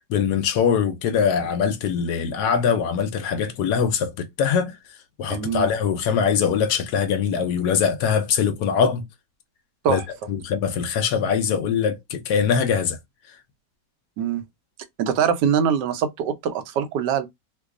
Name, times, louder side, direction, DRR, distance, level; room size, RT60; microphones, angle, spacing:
voice 1, 0.1-4.7 5.2-9.0 9.9-10.0 10.3-13.0, left 7 dB, 75° left, 1.2 m, -22 dB
voice 2, 5.3-5.7 9.8-10.0 14.2-14.4 15.0-17.3, right 8 dB, 85° right, 1.3 m, -23 dB
3.0 x 2.2 x 3.7 m
omnidirectional pair, 1.8 m